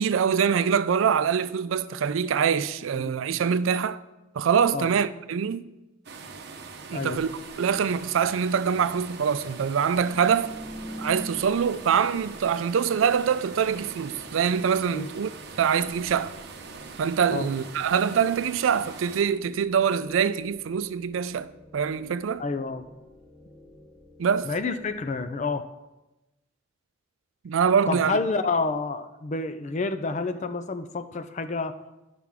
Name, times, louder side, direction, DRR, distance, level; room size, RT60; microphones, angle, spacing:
voice 1, 0.0-4.0 4.4-5.7 6.9-7.3 7.6-10.5 11.0-15.3 15.6-16.3 17.0-22.4 24.2-24.5 27.4-28.2, right 7 dB, 80° right, 0.4 m, -24 dB
sound 1, 6.0-19.2, right 4 dB, 55° right, 0.8 m, -43 dB
sound 2, 9.9-25.7, equal, 15° right, 1.1 m, -47 dB
voice 2, 22.4-22.8 24.4-25.7 27.9-31.8, left 3 dB, 35° left, 0.5 m, -29 dB
11.0 x 5.9 x 3.6 m
head